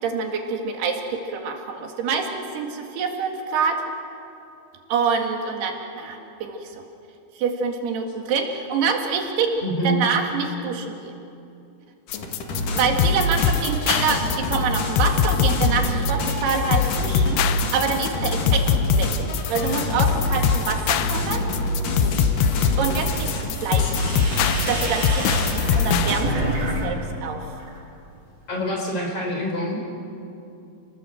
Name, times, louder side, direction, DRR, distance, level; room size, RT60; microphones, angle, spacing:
voice 1, 0.0-3.8 4.9-6.8 7.4-9.5 9.8-11.1 12.7-17.4 17.7-19.1 19.5-21.5 22.8-24.0 24.7-25.4 25.8-27.4, right 5 dB, 80° right, 3 dB, 4.1 m, -26 dB
voice 2, 9.6-10.0 28.5-29.8, equal, 35° left, 0 dB, 5.1 m, -25 dB
sound 1, 12.1-26.1, left 7 dB, 90° left, 3.0 m, -22 dB
sound 2, 12.1-26.3, left 1 dB, 60° left, 3.6 m, -27 dB
sound 3, 22.2-26.8 27.1-27.8, right 1 dB, 65° right, 6.6 m, -30 dB
30.0 x 19.0 x 7.8 m, 2.7 s
omnidirectional pair, 4.6 m